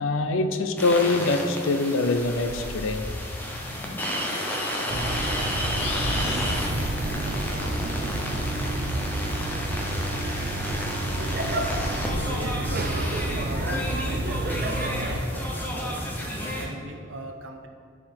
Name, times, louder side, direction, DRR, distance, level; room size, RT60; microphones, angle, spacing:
voice 1, 0.0-3.1, left 3 dB, 80° left, 9 dB, 0.5 m, -24 dB
sound 1, 0.8-16.7, equal, 10° left, 0.7 m, -32 dB
sound 2, 2.0-7.8, left 4 dB, 30° left, 0.3 m, -40 dB
sound 3, 4.9-15.2, right 1 dB, 45° right, 0.6 m, -29 dB
voice 2, 11.1-11.6 12.1-16.0 16.4-17.7, right 1 dB, 80° right, 4 dB, 0.8 m, -41 dB
9.5 x 4.8 x 4.3 m, 2.4 s
head